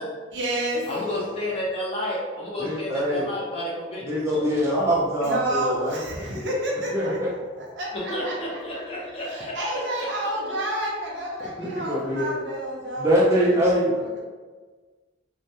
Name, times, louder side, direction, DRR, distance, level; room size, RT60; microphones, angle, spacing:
voice 1, 0.3-0.9 5.2-8.8 9.2-14.2, right 1 dB, 70° right, -2 dB, 0.6 m, -30 dB
voice 2, 0.9-4.5 7.9-9.6, left 1 dB, 30° left, -5 dB, 0.6 m, -31 dB
voice 3, 2.6-3.3 4.1-6.0 6.9-7.3 11.6-12.3 13.0-13.9, equal, 15° right, -7 dB, 0.3 m, -23 dB
2.2 x 2.1 x 2.7 m, 1.4 s
head